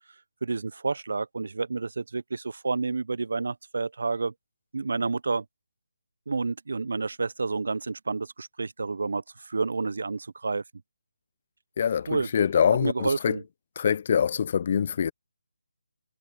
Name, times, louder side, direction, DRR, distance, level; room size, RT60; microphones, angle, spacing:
voice 1, 0.4-4.3 4.7-5.4 6.3-10.6 12.1-12.3 12.8-13.4, right 4 dB, 65° right, 0.9 m, -29 dB
voice 2, 11.8-13.4 13.8-15.1, left 7 dB, 40° left, 0.5 m, -24 dB
figure-of-eight pair, 155°, 0 cm